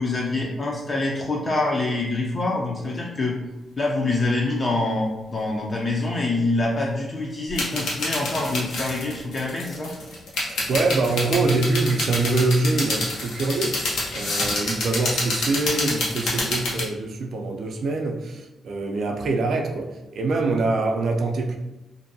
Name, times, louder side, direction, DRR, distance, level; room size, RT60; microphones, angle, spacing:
voice 1, 0.0-3.4 3.8-9.9, left 2 dB, 40° left, -2 dB, 0.4 m, -25 dB
sound 1, 7.5-16.8, left 2 dB, 90° left, 0.7 m, -28 dB
voice 2, 10.4-13.8 14.1-21.6, right 3 dB, 65° right, 3 dB, 0.4 m, -24 dB
2.5 x 2.2 x 2.6 m, 1.0 s
cardioid pair, 95°, 0 cm